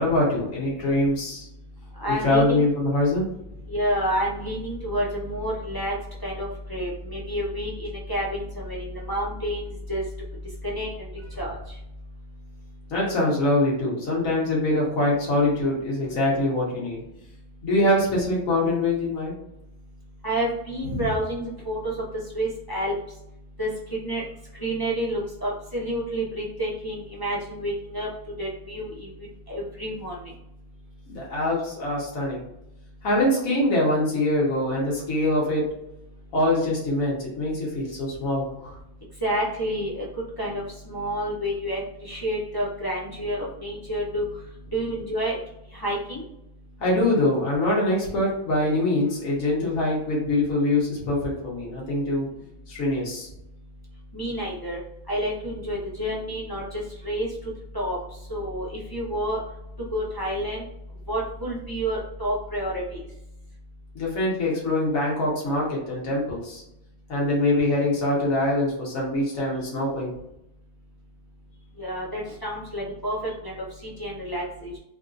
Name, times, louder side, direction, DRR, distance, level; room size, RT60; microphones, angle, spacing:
voice 1, 0.0-1.5 2.2-3.3 12.9-17.0 17.6-19.3 20.8-21.1 31.1-32.4 33.0-35.6 36.3-38.7 46.8-52.3 52.7-53.3 63.9-66.6 67.1-70.1, left 1 dB, 75° left, -4 dB, 1.5 m, -24 dB
voice 2, 2.0-2.6 3.7-6.0 6.2-10.0 10.6-11.1 11.4-11.8 20.2-22.0 22.3-22.9 23.6-23.7 24.0-24.2 24.6-28.1 28.4-30.3 39.2-40.1 40.4-44.3 44.7-45.4 45.7-46.2 54.1-54.8 55.1-57.3 57.7-58.0 58.3-59.4 59.9-60.7 61.1-63.0 71.8-73.5 73.8-74.8, equal, 25° left, -6 dB, 0.5 m, -29 dB
3.5 x 2.6 x 2.4 m, 0.82 s
omnidirectional pair, 1.5 m